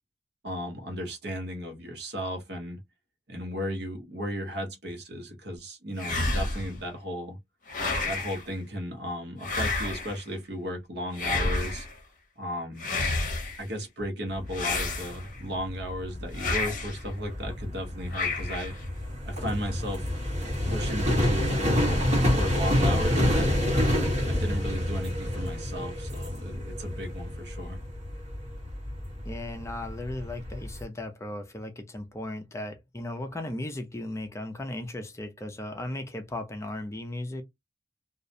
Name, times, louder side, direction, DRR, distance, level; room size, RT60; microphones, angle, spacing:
voice 1, 0.4-2.8 3.3-7.4 8.0-11.9 12.4-12.9 13.6-18.7 19.2-20.1 20.6-21.7 22.3-23.6 24.2-27.8, equal, 65° right, 0.9 m, -35 dB
sound 1, 6.0-6.8 7.7-8.4 9.4-10.2 11.1-11.9 12.8-13.6 14.5-15.4 16.3-17.0 18.1-18.8, left 3 dB, 50° left, 0.7 m, -30 dB
sound 2, 14.3-30.8, left 1 dB, 40° right, 1.2 m, -28 dB
voice 2, 29.2-37.4, left 1 dB, 15° left, 0.4 m, -36 dB
2.3 x 2.1 x 2.7 m
head